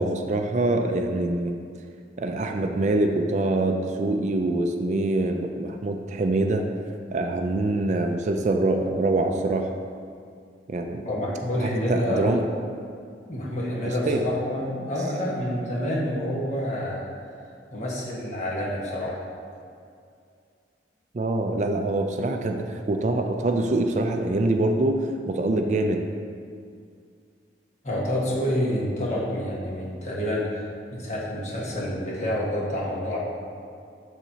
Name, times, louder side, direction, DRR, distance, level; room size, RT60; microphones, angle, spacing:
voice 1, 0.0-1.5 2.2-6.7 7.1-9.7 10.7-11.1 11.6-12.4 13.9-14.2 21.1-26.0, right 2 dB, 40° right, 5 dB, 0.4 m, -24 dB
voice 2, 11.0-12.4 13.3-17.0 17.7-19.2 27.8-33.2, left 1 dB, 40° left, -5 dB, 1.4 m, -28 dB
7.2 x 7.0 x 2.8 m, 2.3 s
head